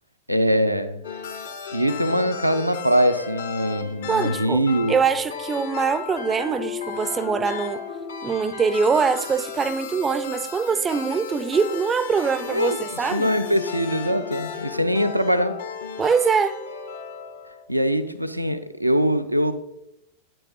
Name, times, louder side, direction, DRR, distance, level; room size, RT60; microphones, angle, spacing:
voice 1, 0.3-1.0 1.7-4.9 12.5-15.6 17.7-19.5, equal, 90° right, 0.4 m, -22 dB
sound 1, 1.0-17.6, left 6 dB, 65° left, 0.8 m, -34 dB
voice 2, 4.1-4.6 4.9-7.8 8.2-13.3 16.0-16.6, right 5 dB, 20° right, 0.4 m, -23 dB
9.5 x 7.7 x 2.7 m
figure-of-eight pair, 90°, 0 cm